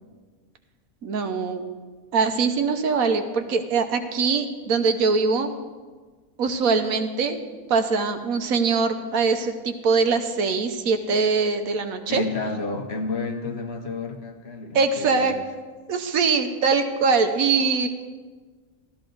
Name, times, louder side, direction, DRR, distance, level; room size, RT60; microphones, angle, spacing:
voice 1, 1.0-1.6 2.1-5.5 6.4-7.4 7.7-12.2 14.7-15.4 15.9-17.9, right 4 dB, 85° right, 7 dB, 1.4 m, -22 dB
voice 2, 12.1-15.5, left 3 dB, 50° left, 4 dB, 1.2 m, -31 dB
13.5 x 13.0 x 3.9 m, 1.4 s
omnidirectional pair, 1.5 m